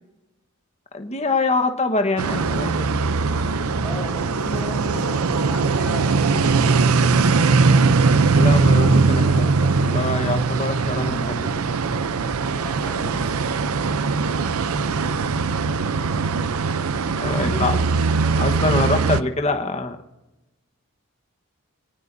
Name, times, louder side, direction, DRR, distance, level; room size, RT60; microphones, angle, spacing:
voice 1, 0.9-3.0 8.3-11.7 17.2-17.8 18.4-20.0, left 3 dB, 30° left, 6 dB, 1.3 m, -25 dB
sound 1, 2.2-19.2, right 4 dB, 85° right, 0.6 m, -20 dB
voice 2, 3.8-7.2 12.5-13.4 17.2-17.8 18.3-18.8, equal, 5° right, -1 dB, 5.1 m, -34 dB
25.5 x 19.0 x 2.7 m, 0.98 s
head